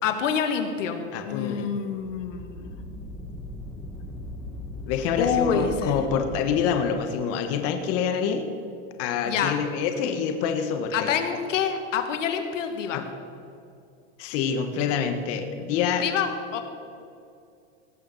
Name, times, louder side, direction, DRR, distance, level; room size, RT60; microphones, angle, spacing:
voice 1, 0.0-2.8 5.2-5.9 9.2-9.6 10.9-13.0 16.0-16.6, left 7 dB, 85° left, 7 dB, 1.7 m, -27 dB
voice 2, 1.1-1.7 4.8-8.5 9.0-11.1 12.9-13.0 14.2-16.0, left 7 dB, 40° left, 6 dB, 1.3 m, -26 dB
sound 1, 1.9-6.8, left 1 dB, 15° left, 1.3 m, -38 dB
18.5 x 6.7 x 7.0 m, 2.5 s
supercardioid pair, 145°, 36 cm